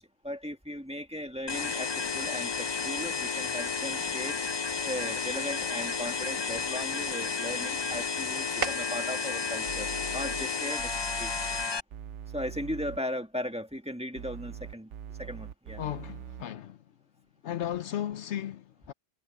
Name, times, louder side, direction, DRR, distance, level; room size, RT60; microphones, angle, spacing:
voice 1, 0.0-4.4 4.8-11.5 12.3-14.9 15.2-15.8, equal, 5° right, 1.7 m, -37 dB
sound 1, 1.5-11.8, left 5 dB, 40° left, 0.4 m, -32 dB
sound 2, 3.0-11.0, right 5 dB, 55° right, 1.4 m, -45 dB
sound 3, 9.7-10.5 10.8-13.0 14.2-16.4, right 9 dB, 80° right, 1.0 m, -42 dB
voice 2, 15.8-16.8 17.4-18.9, left 11 dB, 75° left, 1.0 m, -35 dB
omnidirectional pair, 1.2 m